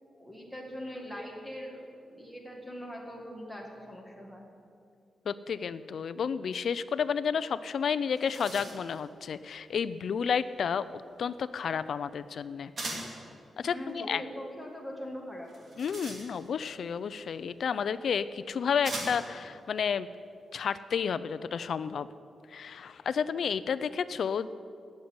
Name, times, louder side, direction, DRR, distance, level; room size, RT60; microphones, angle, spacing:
voice 1, 0.2-4.5 13.6-15.5, equal, 5° right, 0 dB, 1.8 m, -42 dB
voice 2, 5.3-12.7 13.6-14.2 15.8-20.1 20.5-22.1 22.5-24.5, left 7 dB, 60° left, 15 dB, 0.5 m, -31 dB
sound 1, 7.6-7.7 8.0-9.0 12.8-13.2 15.5-16.6 17.7-17.8 18.8-19.4, right 2 dB, 40° right, 2.5 m, -40 dB
17.5 x 6.7 x 9.5 m, 2.5 s
wide cardioid pair, 165°, 0 cm